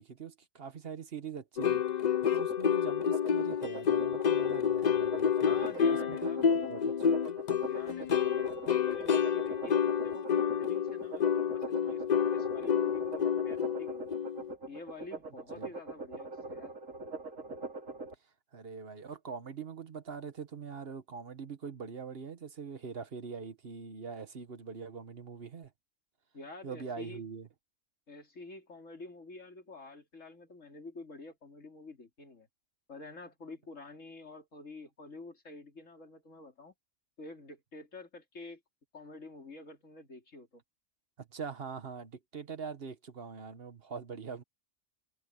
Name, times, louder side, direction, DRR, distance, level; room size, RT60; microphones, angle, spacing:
voice 1, 0.0-1.8 2.3-7.1 15.5-15.7 18.5-25.7 26.6-27.5 41.2-44.4, right 6 dB, 50° right, 1.4 m, -43 dB
sound 1, 1.6-14.5, left 7 dB, 45° left, 0.6 m, -29 dB
sound 2, 2.1-18.1, right 3 dB, 85° right, 3.3 m, -43 dB
voice 2, 5.4-6.5 7.6-14.2 14.7-16.8 26.3-27.2 28.1-32.5 32.9-36.7 37.2-38.6 38.9-40.6, left 3 dB, 75° left, 3.7 m, -48 dB
omnidirectional pair, 1.3 m